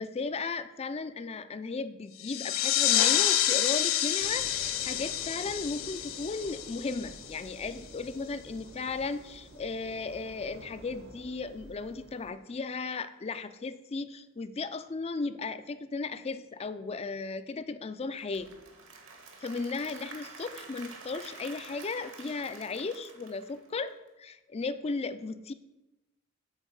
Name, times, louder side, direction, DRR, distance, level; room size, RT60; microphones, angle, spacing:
voice 1, 0.0-18.5 19.4-25.5, left 4 dB, 30° left, 12 dB, 0.4 m, -36 dB
sound 1, 2.2-7.5, left 12 dB, 75° left, 0.6 m, -28 dB
sound 2, 4.2-12.3, right 1 dB, 55° right, 1.0 m, -50 dB
Applause / Crowd, 18.0-24.1, right 4 dB, 70° right, 1.6 m, -48 dB
8.1 x 4.6 x 7.1 m, 0.98 s
head